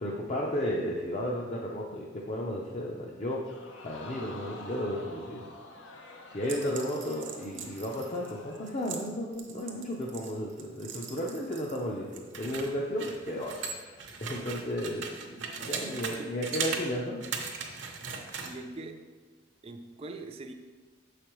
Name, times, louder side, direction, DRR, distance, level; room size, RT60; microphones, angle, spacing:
voice 1, 0.0-3.4 3.8-5.4 6.3-14.0 14.2-17.2, equal, 35° left, -2 dB, 0.5 m, -34 dB
Crowd, 3.4-8.9 9.3-9.4, left 2 dB, 85° left, 0.7 m, -48 dB
sound 1, 6.4-11.8 12.1-16.2 16.4-16.8 17.2-18.5, right 6 dB, 70° right, 0.7 m, -38 dB
voice 2, 15.6-16.4 18.4-19.1 19.6-20.5, right 2 dB, 30° right, 5 dB, 0.4 m, -43 dB
6.7 x 5.0 x 3.0 m, 1.3 s
head